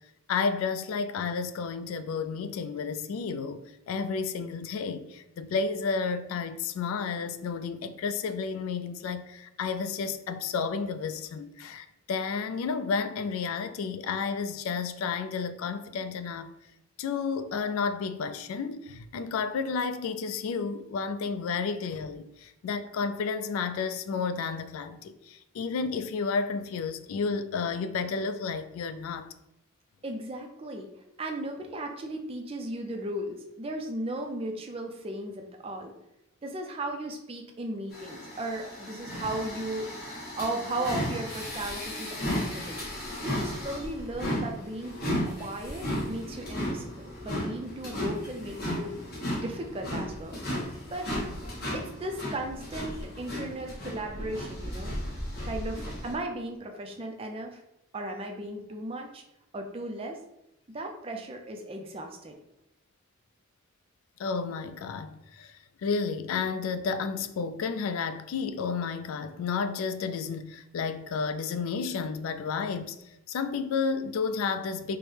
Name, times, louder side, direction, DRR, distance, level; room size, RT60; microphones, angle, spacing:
voice 1, 0.3-16.5 17.0-29.3 64.2-65.5 65.8-73.0 73.3-75.0, left 5 dB, 80° left, 0.3 m, -31 dB
voice 2, 30.0-30.9 31.2-35.9 36.4-39.8 40.4-42.8 43.2-48.9 49.3-50.3 50.9-51.0 51.7-55.0 55.4-57.6 57.9-59.2 59.5-60.2 60.7-62.3, right 1 dB, 25° right, 0.4 m, -36 dB
sound 1, 37.9-56.1, equal, 45° left, 1.0 m, -35 dB
4.5 x 2.0 x 3.2 m
head